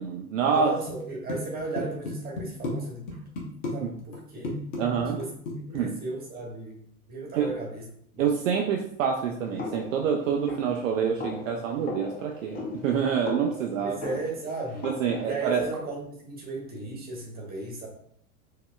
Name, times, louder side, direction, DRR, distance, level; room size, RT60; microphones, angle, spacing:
voice 1, 0.0-0.7 3.8-3.9 4.8-5.2 5.7-6.0 7.3-7.6 8.2-14.0 14.8-15.7, right 7 dB, 60° right, 1 dB, 0.6 m, -27 dB
voice 2, 0.5-3.1 3.7-4.6 5.1-5.3 5.7-6.8 7.1-7.8 8.1-8.3 13.8-14.9 15.2-17.9, right 3 dB, 20° right, -1 dB, 1.4 m, -35 dB
sound 1, 0.9-1.0 1.3-2.8 3.1-3.7 4.0-4.2 4.4-5.8, left 2 dB, 55° left, 1.2 m, -33 dB
sound 2, 9.6-15.3, left 3 dB, 20° left, 0.7 m, -38 dB
4.7 x 2.8 x 2.3 m, 0.66 s
figure-of-eight pair, 80°, 44 cm